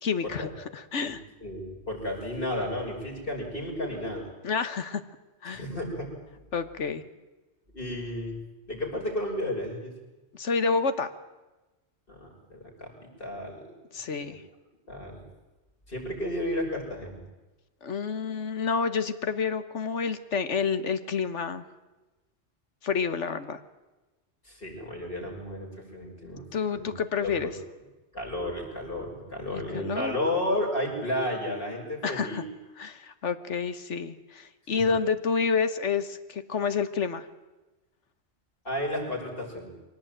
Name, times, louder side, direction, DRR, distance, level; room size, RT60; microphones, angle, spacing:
voice 1, 0.0-1.2 4.4-5.0 5.4-5.6 6.5-7.0 10.3-11.1 13.9-14.4 17.8-21.6 22.8-23.6 26.5-27.5 29.5-30.2 32.0-32.4 32.8-37.3, left 5 dB, 80° left, 11 dB, 1.6 m, -29 dB
voice 2, 1.4-4.3 5.5-6.1 7.7-8.4 8.7-9.9 12.1-12.9 13.2-13.7 14.1-14.4 14.9-15.2 15.9-17.2 24.4-26.5 26.7-26.9 27.2-27.6 28.1-32.4 38.6-39.7, left 1 dB, 50° left, -1 dB, 6.2 m, -32 dB
24.0 x 18.0 x 9.1 m, 1.1 s
omnidirectional pair, 1.2 m